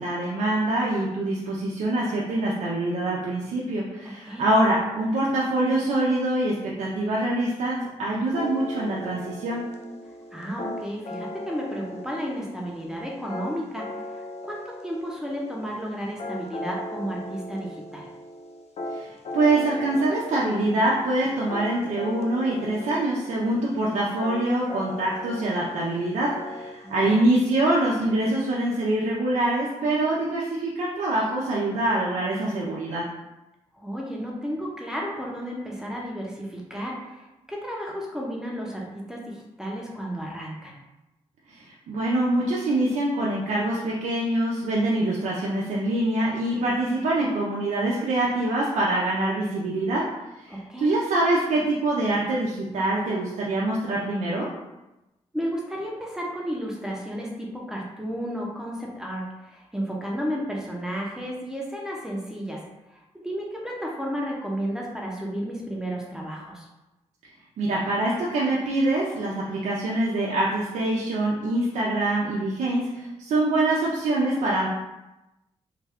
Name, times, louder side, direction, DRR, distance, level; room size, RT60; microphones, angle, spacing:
voice 1, 0.0-9.6 18.9-33.1 41.5-50.0 50.4-54.5 67.6-74.7, right 2 dB, 90° right, -5 dB, 0.5 m, -25 dB
sound 1, 8.3-27.2, left 1 dB, 60° left, 0.5 m, -38 dB
voice 2, 10.3-18.1 26.8-27.3 33.7-40.7 50.5-51.0 55.3-62.6 62.9-66.7, equal, 5° right, -3 dB, 0.7 m, -33 dB
3.2 x 2.3 x 3.5 m, 0.99 s
cardioid pair, 80°, 12 cm